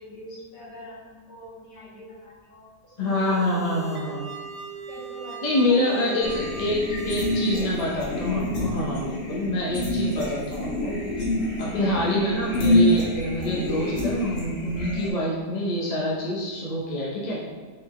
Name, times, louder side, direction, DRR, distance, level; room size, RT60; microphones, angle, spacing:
voice 1, 0.0-3.5 4.9-5.8, equal, 75° left, -7 dB, 1.9 m, -44 dB
voice 2, 3.0-4.2 5.4-10.9 11.6-17.4, left 1 dB, 30° left, -6 dB, 0.8 m, -26 dB
sound 1, 3.0-7.9, right 5 dB, 60° right, 0.8 m, -39 dB
sound 2, 6.2-15.1, left 1 dB, 55° left, 1.2 m, -27 dB
5.2 x 3.9 x 2.4 m, 1.5 s
omnidirectional pair, 1.9 m